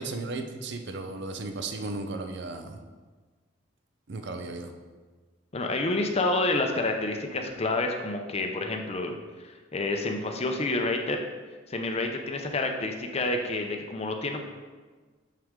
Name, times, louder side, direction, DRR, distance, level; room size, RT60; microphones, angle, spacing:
voice 1, 0.0-2.8 4.1-4.7, right 3 dB, 65° right, 6 dB, 0.6 m, -35 dB
voice 2, 5.5-9.2 9.4-11.2 11.7-14.4, left 2 dB, 35° left, 4 dB, 0.6 m, -28 dB
6.7 x 5.9 x 3.7 m, 1.4 s
head